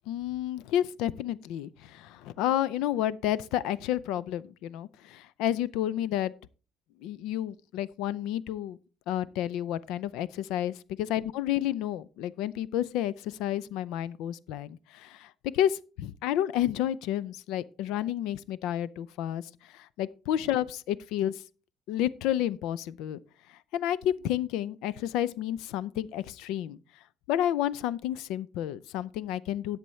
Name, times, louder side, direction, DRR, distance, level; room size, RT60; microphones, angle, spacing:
voice 1, 0.1-6.3 7.0-8.8 9.1-21.4 21.9-23.2 23.7-26.8 27.3-29.8, left 11 dB, 85° left, 0.5 m, -30 dB
13.0 x 8.3 x 3.2 m
cardioid pair, 170°, 0 cm